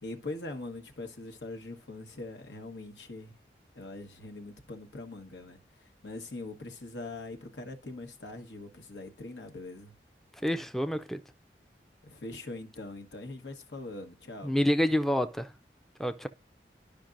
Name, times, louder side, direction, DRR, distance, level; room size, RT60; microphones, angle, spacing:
voice 1, 0.0-3.3 3.7-5.6 6.0-9.9 12.0-14.5, left 2 dB, 90° left, 1.3 m, -42 dB
voice 2, 10.4-11.2 14.4-15.5 16.0-16.3, equal, ahead, 0.3 m, -28 dB
12.0 x 5.2 x 2.5 m
head